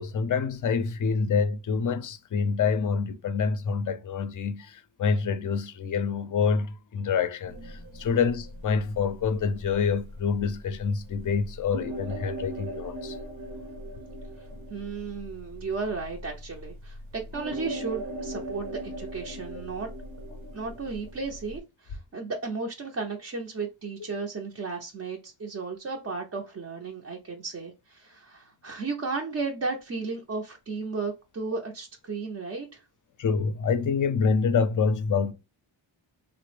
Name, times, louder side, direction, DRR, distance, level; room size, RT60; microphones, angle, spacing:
voice 1, 0.0-13.2 33.2-35.3, left 5 dB, 40° left, 0.4 m, -27 dB
sound 1, 7.5-21.6, right 1 dB, 70° right, 0.8 m, -40 dB
voice 2, 14.4-19.9 20.5-32.9, right 4 dB, 35° right, 0.5 m, -34 dB
3.2 x 2.0 x 3.1 m
wide cardioid pair, 95°, 50 cm